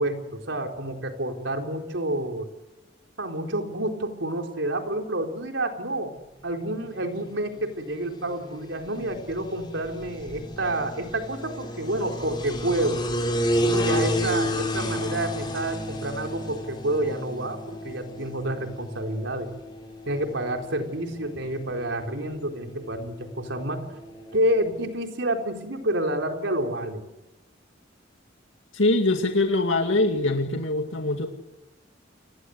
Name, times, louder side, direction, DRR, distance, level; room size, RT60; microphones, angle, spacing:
voice 1, 0.0-2.5 3.2-6.1 6.4-13.0 13.6-19.5 20.1-23.8 24.3-27.0, right 1 dB, 75° right, 3 dB, 4.2 m, -29 dB
sound 1, 6.8-24.8, equal, 25° left, 5.8 m, -32 dB
voice 2, 28.7-31.3, left 2 dB, 90° left, 4 dB, 2.2 m, -23 dB
29.5 x 21.0 x 8.1 m, 1.0 s
head